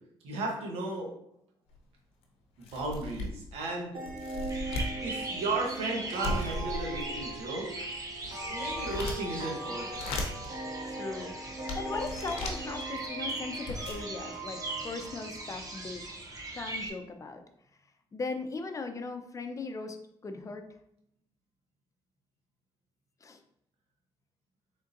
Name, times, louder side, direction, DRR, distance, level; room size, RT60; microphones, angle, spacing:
voice 1, 0.2-1.1 2.6-4.0 5.0-7.7 8.4-10.1, right 2 dB, 85° right, 0 dB, 1.0 m, -35 dB
sound 1, 1.7-1.8 2.2-2.3 2.6-3.5 4.0-4.9 6.2-7.3 7.9-9.4 9.8-10.5 11.1-11.2 11.7-12.6 13.3-13.4 13.5-14.0, left 2 dB, 90° left, 0.7 m, -36 dB
sound 2, 3.9-16.4, right 2 dB, 60° right, 1.5 m, -41 dB
sound 3, 4.5-16.9, right 2 dB, 35° right, 0.8 m, -40 dB
voice 2, 10.8-16.0 16.5-17.4 18.1-20.7 23.2-23.4, left 3 dB, 35° left, 7 dB, 0.5 m, -39 dB
3.8 x 3.6 x 2.5 m, 0.74 s
cardioid pair, 75°, 10 cm